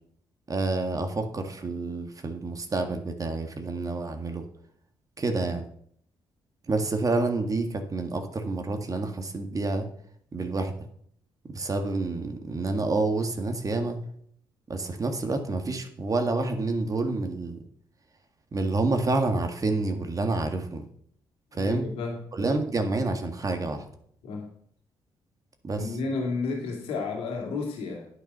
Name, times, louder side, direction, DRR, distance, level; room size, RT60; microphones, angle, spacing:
voice 1, 0.5-4.4 5.2-5.7 6.7-9.9 10.3-10.7 11.5-14.0 14.7-17.6 18.5-20.8 21.5-21.9 22.3-23.9 25.6-25.8, right 3 dB, 35° right, 6 dB, 1.8 m, -28 dB
voice 2, 21.5-22.2 24.2-24.5 25.8-28.1, left 4 dB, 85° left, 0 dB, 2.6 m, -31 dB
10.5 x 6.7 x 5.6 m, 0.65 s
supercardioid pair, 70°, 10 cm